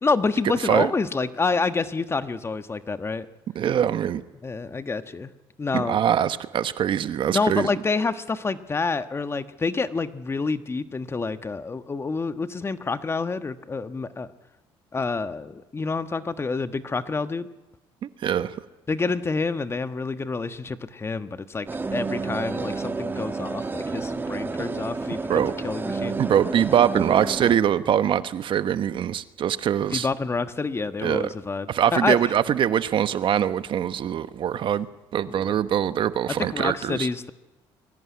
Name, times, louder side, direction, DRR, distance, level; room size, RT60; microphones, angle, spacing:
voice 1, 0.0-3.3 4.4-5.3 5.6-6.0 7.3-14.3 14.9-17.5 18.9-21.7 21.9-26.2 29.9-32.3 35.4-35.6 36.3-37.3, left 4 dB, 25° left, 11 dB, 1.3 m, -28 dB
voice 2, 3.5-4.2 5.7-7.7 18.0-18.5 25.3-25.5 26.2-30.1 31.0-31.3 31.7-34.9 35.1-37.1, right 9 dB, 55° right, 13 dB, 1.1 m, -23 dB
sound 1, 21.7-27.6, right 4 dB, 20° right, 1.4 m, -30 dB
22.5 x 17.5 x 9.6 m, 1.1 s
cardioid pair, 100°, 10 cm